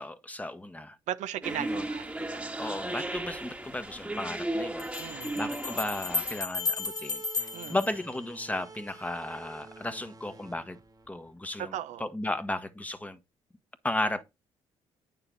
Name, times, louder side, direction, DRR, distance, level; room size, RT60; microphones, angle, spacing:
voice 1, 0.0-1.0 1.6-1.9 2.6-4.9 5.3-10.8 11.1-11.7 12.0-13.2 13.8-14.2, left 1 dB, 10° left, 1.4 m, -34 dB
voice 2, 1.1-2.5 5.0-5.4 7.5-7.8 11.6-12.1, right 11 dB, 75° right, 0.7 m, -37 dB
sound 1, 1.4-6.4, right 1 dB, 10° right, 1.5 m, -35 dB
Bell, 3.2-3.3 4.8-8.7, left 4 dB, 30° left, 1.9 m, -34 dB
sound 2, 6.6-11.9, right 4 dB, 30° right, 1.3 m, -50 dB
8.8 x 6.8 x 4.0 m
supercardioid pair, 75°, 12 cm